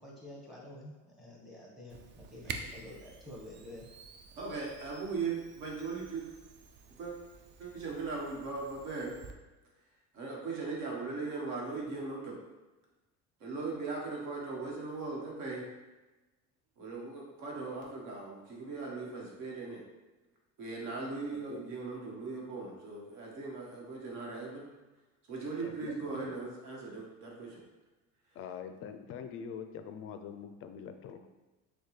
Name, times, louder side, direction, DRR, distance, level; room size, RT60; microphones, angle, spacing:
voice 1, 0.0-3.9, left 1 dB, ahead, -3 dB, 1.1 m, -49 dB
Camera, 1.9-9.3, right 4 dB, 35° right, 0.4 m, -49 dB
voice 2, 4.4-6.3 7.0-7.1 7.6-9.1 10.1-12.4 13.4-15.7 16.8-19.8 20.6-24.7 25.3-27.6, right 4 dB, 60° right, -2 dB, 1.3 m, -39 dB
voice 3, 25.6-26.3 28.3-31.3, left 7 dB, 40° left, 8 dB, 0.4 m, -44 dB
6.4 x 2.3 x 3.2 m, 1.1 s
cardioid pair, 130°, 34 cm